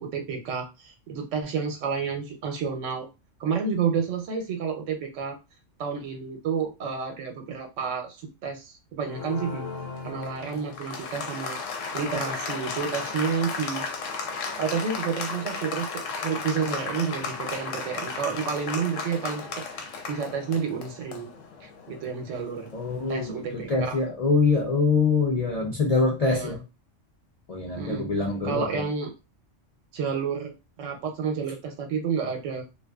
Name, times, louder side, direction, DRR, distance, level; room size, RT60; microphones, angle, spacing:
voice 1, 0.0-3.1 3.4-5.4 5.8-9.6 10.0-11.6 11.9-13.9 14.6-21.3 21.6-22.7 23.1-24.0 26.2-26.6 27.8-28.1 28.4-29.1 29.9-32.7, right 6 dB, 85° right, 4 dB, 1.0 m, -30 dB
Applause, 9.0-23.4, left 4 dB, 90° left, 0.9 m, -35 dB
voice 2, 22.7-26.6 27.5-28.8, left 4 dB, 55° left, -3 dB, 0.4 m, -24 dB
2.5 x 2.2 x 2.3 m, 0.27 s
omnidirectional pair, 1.3 m